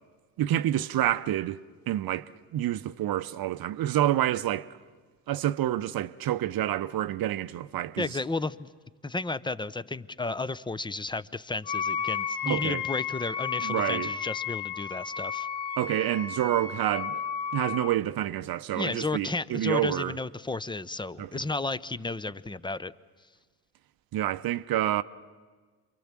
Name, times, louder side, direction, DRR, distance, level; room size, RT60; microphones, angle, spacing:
voice 1, 0.4-4.7 5.3-8.2 12.5-12.8 13.6-14.1 15.8-17.2 17.5-20.2 21.2-21.3 24.1-25.0, right 13 dB, 50° right, 0.8 m, -28 dB
voice 2, 8.0-8.7 9.0-15.5 18.7-22.9, left 3 dB, 10° left, 0.7 m, -33 dB
Wind instrument woodwind instrument, 11.6-18.0, left 7 dB, 65° left, 1.4 m, -33 dB
27.5 x 23.0 x 7.5 m
hypercardioid pair, 60°, 45 cm